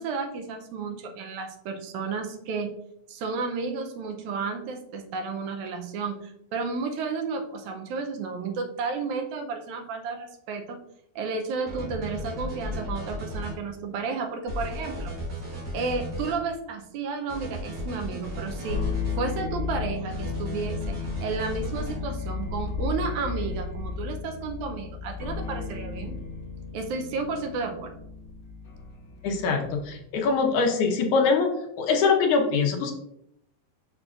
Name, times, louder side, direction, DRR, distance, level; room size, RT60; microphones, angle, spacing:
voice 1, 0.0-2.8 3.1-10.8 11.2-15.2 15.7-18.9 19.2-26.2 26.7-28.0, right 4 dB, 80° right, 4 dB, 1.8 m, -32 dB
sound 1, 11.7-13.6 14.5-16.4 17.3-19.2 20.1-22.0, left 1 dB, 45° right, 3.3 m, -35 dB
sound 2, 18.6-30.0, left 4 dB, 45° left, 2.2 m, -34 dB
voice 2, 29.2-32.9, left 4 dB, 70° left, 2 dB, 2.1 m, -23 dB
6.9 x 6.1 x 2.5 m, 0.75 s
omnidirectional pair, 4.1 m